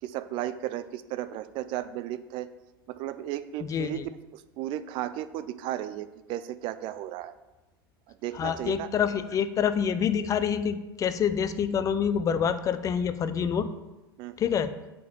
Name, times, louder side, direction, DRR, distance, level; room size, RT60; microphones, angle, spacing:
voice 1, 0.0-2.5 2.9-4.0 4.3-7.3 8.1-8.9 14.2-14.4, right 13 dB, 40° right, 13 dB, 0.4 m, -35 dB
voice 2, 3.7-4.1 8.3-13.7 14.4-14.7, left 7 dB, 25° left, 12 dB, 0.5 m, -27 dB
5.7 x 5.2 x 6.6 m, 1.0 s
figure-of-eight pair, 80°, 13 cm